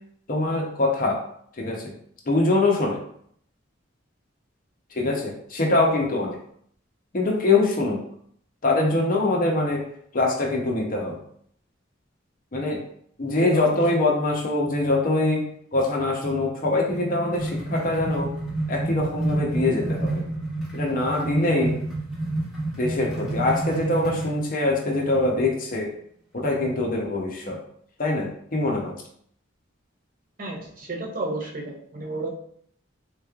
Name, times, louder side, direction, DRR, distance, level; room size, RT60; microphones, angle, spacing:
voice 1, 0.3-1.2 1.6-1.9 2.3-3.0 4.9-6.4 7.1-8.0 8.6-9.8 10.1-11.2 12.5-12.8 13.2-15.5 15.7-18.3 18.7-20.2 20.7-21.8 22.7-25.9 26.3-27.6 28.0-28.9, left 2 dB, 45° left, 0 dB, 0.7 m, -23 dB
voice 2, 13.4-13.8 30.4-32.3, right 2 dB, 40° right, -1 dB, 0.7 m, -32 dB
sound 1, 16.9-24.4, right 1 dB, ahead, 1.0 m, -29 dB
3.5 x 3.1 x 2.3 m, 0.65 s
head